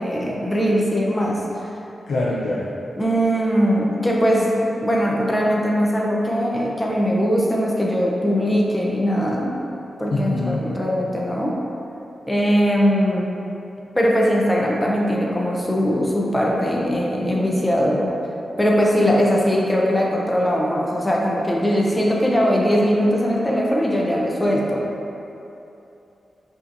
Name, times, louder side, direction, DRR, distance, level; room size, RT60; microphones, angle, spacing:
voice 1, 0.0-1.4 3.0-9.6 10.0-11.6 12.3-13.3 13.9-18.1 18.6-24.8, equal, 10° left, -3 dB, 0.5 m, -20 dB
voice 2, 2.1-2.7 10.1-10.7, left 2 dB, 70° left, -6 dB, 0.4 m, -24 dB
5.6 x 2.7 x 2.5 m, 2.9 s
wide cardioid pair, 105°, 0 cm